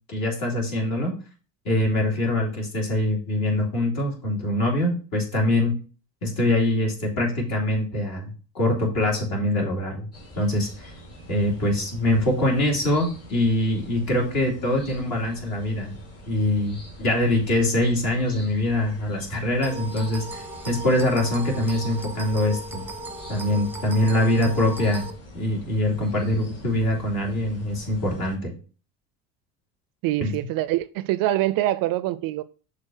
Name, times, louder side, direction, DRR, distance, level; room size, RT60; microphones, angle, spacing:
voice 1, 0.1-1.1 1.7-5.7 6.2-10.1 10.4-10.9 11.3-15.9 16.3-22.8 23.3-25.1 25.3-28.5 30.2-30.3, left 1 dB, 50° left, 3.4 m, -24 dB
sound 1, 10.1-28.4, equal, 30° left, 2.9 m, -44 dB
sound 2, 19.6-25.1, right 2 dB, 5° right, 1.0 m, -37 dB
voice 2, 30.0-32.4, right 15 dB, 50° right, 0.4 m, -24 dB
6.4 x 3.6 x 6.2 m
hypercardioid pair, 85°, 46 cm